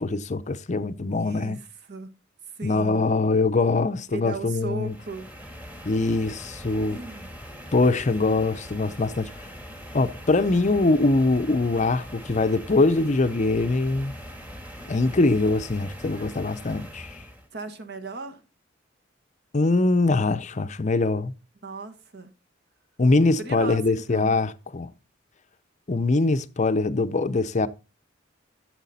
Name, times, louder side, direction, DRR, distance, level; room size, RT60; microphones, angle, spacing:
voice 1, 0.0-1.6 2.6-4.9 5.9-7.0 7.7-9.5 9.9-14.1 14.9-17.2 19.5-21.3 23.0-24.9 25.9-27.7, left 3 dB, 35° left, 0.6 m, -23 dB
voice 2, 1.1-2.2 2.5-3.1 4.1-5.3 6.9-7.3 17.5-18.4 21.6-22.3 23.4-24.3, right 3 dB, 55° right, 1.4 m, -37 dB
sound 1, 4.8-17.5, equal, 10° right, 1.6 m, -41 dB
12.5 x 7.4 x 4.1 m
head